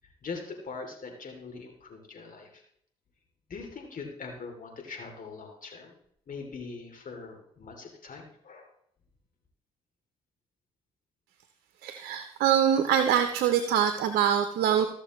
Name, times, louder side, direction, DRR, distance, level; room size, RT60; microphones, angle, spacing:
voice 1, 0.2-2.6 3.5-5.9 6.3-8.7, left 4 dB, 50° left, 2 dB, 2.9 m, -42 dB
voice 2, 11.8-14.9, right 9 dB, 70° right, 8 dB, 0.8 m, -24 dB
14.5 x 6.8 x 3.1 m, 0.68 s
hypercardioid pair, 45°, 17 cm